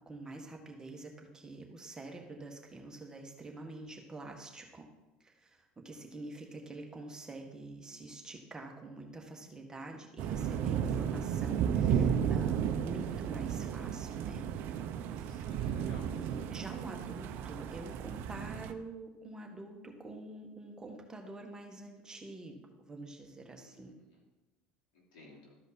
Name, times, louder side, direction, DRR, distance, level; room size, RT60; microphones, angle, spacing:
voice 1, 0.0-4.9 5.2-14.5 15.1-15.4 16.1-23.9, right 2 dB, 15° right, 2 dB, 1.7 m, -46 dB
sound 1, 10.2-18.7, right 8 dB, 60° right, 0.7 m, -33 dB
voice 2, 14.9-16.1 23.6-24.2 24.9-25.6, left 2 dB, 80° left, -3 dB, 3.2 m, -56 dB
13.5 x 5.1 x 4.3 m, 1.0 s
supercardioid pair, 90°, 4 cm